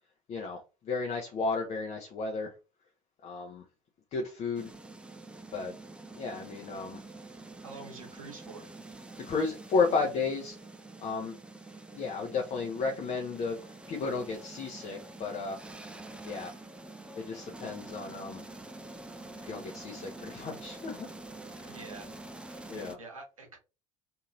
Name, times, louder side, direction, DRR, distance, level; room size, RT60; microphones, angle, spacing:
voice 1, 0.3-0.6 0.9-2.5 3.2-3.6 4.1-4.7 5.5-5.7 6.2-7.0 9.3-10.6 11.0-11.3 11.9-13.6 13.9-15.6 16.2-16.6 17.2-18.4 19.4-21.1 21.5-21.8 22.7-23.0, left 4 dB, 40° left, 0.7 m, -33 dB
sound 1, 4.5-23.0, right 2 dB, 5° right, 0.4 m, -47 dB
voice 2, 7.6-8.7 21.7-22.1 22.4-23.6, right 3 dB, 80° right, 1.0 m, -47 dB
2.9 x 2.7 x 2.5 m
figure-of-eight pair, 60°, 17 cm